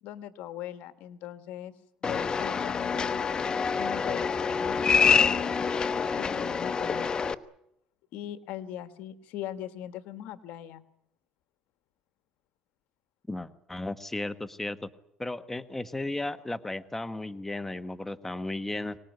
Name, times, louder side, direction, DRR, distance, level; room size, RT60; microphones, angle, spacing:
voice 1, 0.0-1.7 2.0-3.3 3.8-5.5 6.2-7.2 8.1-10.8, left 11 dB, 80° left, 12 dB, 1.5 m, -40 dB
sound 1, 2.0-7.3, left 5 dB, 30° left, 1.0 m, -26 dB
voice 2, 13.3-14.9 15.2-19.0, left 2 dB, 10° left, 11 dB, 1.2 m, -35 dB
24.5 x 19.0 x 9.4 m, 0.78 s
cardioid pair, 110°, 3 cm